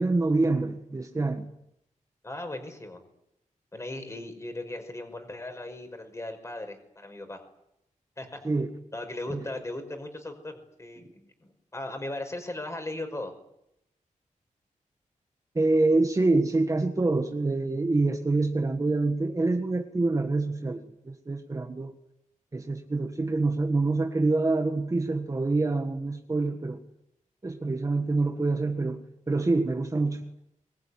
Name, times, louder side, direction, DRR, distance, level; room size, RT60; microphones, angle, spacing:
voice 1, 0.0-1.5 8.4-8.7 9.3-9.4 15.5-21.9 22.5-26.8 27.4-30.2, right 3 dB, 25° right, 1.7 m, -26 dB
voice 2, 2.2-3.0 3.7-7.4 8.2-8.4 8.9-13.3, left 1 dB, 20° left, 5.6 m, -38 dB
23.5 x 21.5 x 10.0 m
wide cardioid pair, 165°, 13 cm